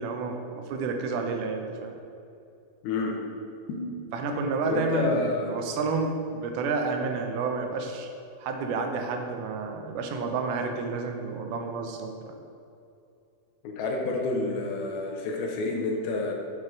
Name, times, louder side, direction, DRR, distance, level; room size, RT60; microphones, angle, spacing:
voice 1, 0.0-1.9 4.1-8.1 8.4-12.4, right 4 dB, 80° right, 4 dB, 1.9 m, -30 dB
voice 2, 2.8-3.2 3.7-3.8 4.7-5.5 13.6-16.3, left 2 dB, 85° left, 0 dB, 2.8 m, -29 dB
7.4 x 4.8 x 5.2 m, 2.6 s
omnidirectional pair, 4.3 m